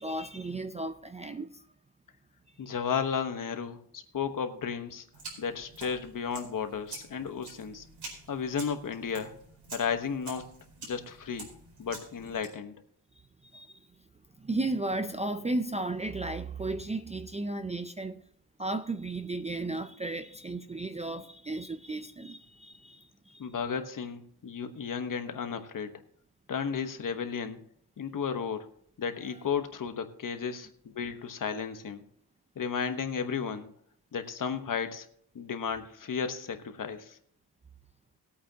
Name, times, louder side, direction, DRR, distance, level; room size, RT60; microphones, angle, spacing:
voice 1, 0.0-1.7 2.7-2.8 13.5-13.9 14.4-18.2 18.6-23.5, right 2 dB, 15° right, 0.4 m, -34 dB
voice 2, 2.6-5.0 5.4-7.9 8.3-9.3 9.7-10.4 10.8-11.5 11.8-12.7 23.4-25.9 26.5-27.6 28.0-28.7 29.0-30.7 30.9-32.0 32.6-33.7 34.1-35.1 35.3-37.2, left 6 dB, 50° left, 1.2 m, -33 dB
sound 1, 5.1-12.5, right 3 dB, 80° right, 4.5 m, -47 dB
20.0 x 8.6 x 2.8 m
wide cardioid pair, 140°, 40 cm